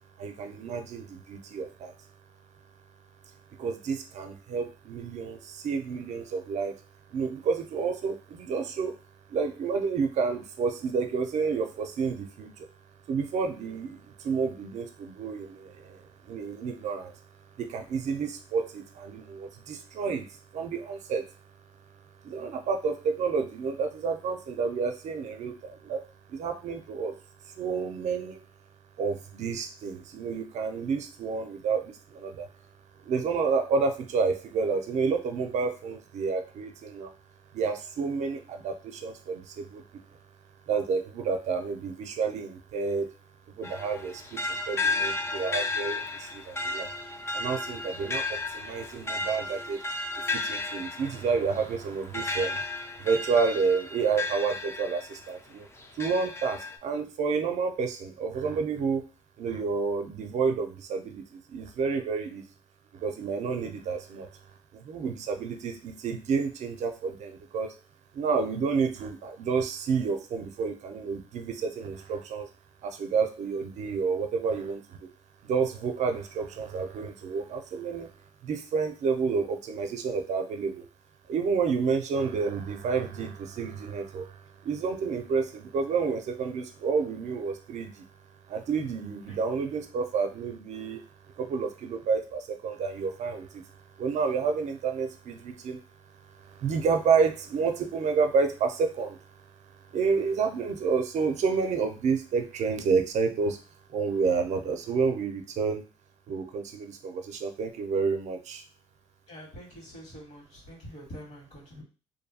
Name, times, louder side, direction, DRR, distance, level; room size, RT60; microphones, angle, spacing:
voice 1, 0.2-1.9 3.6-6.8 7.1-8.9 9.3-12.7 13.1-17.1 17.6-20.3 20.5-21.3 22.2-26.0 26.3-27.1 27.4-28.4 29.0-32.5 33.0-37.1 37.5-40.0 40.7-43.1 43.6-46.9 47.3-49.8 50.3-52.6 53.0-55.7 56.0-59.0 59.4-62.4 62.9-64.3 64.7-67.7 68.1-72.5 72.8-75.1 75.4-78.1 78.4-80.9 81.3-88.1 88.5-91.0 91.3-93.7 94.0-95.8 96.3-99.2 99.9-103.6 103.9-105.8 106.3-108.6, right 5 dB, 60° right, 6 dB, 0.5 m, -30 dB
sound 1, 43.6-55.3 55.8-56.8, left 3 dB, 20° left, 0.3 m, -33 dB
voice 2, 109.3-111.8, equal, 60° left, -2 dB, 1.5 m, -45 dB
2.6 x 2.2 x 2.7 m, 0.35 s
cardioid pair, 95°, 13 cm